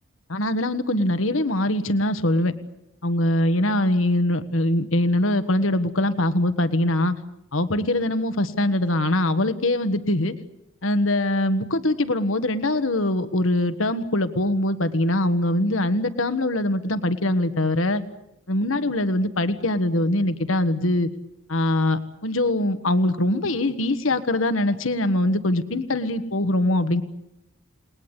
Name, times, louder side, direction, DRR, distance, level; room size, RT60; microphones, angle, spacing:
voice 1, 0.3-2.5 3.0-7.1 7.5-10.3 10.8-18.0 18.5-21.1 21.5-27.0, left 1 dB, 80° left, 10 dB, 1.5 m, -22 dB
29.0 x 20.5 x 8.3 m, 0.86 s
head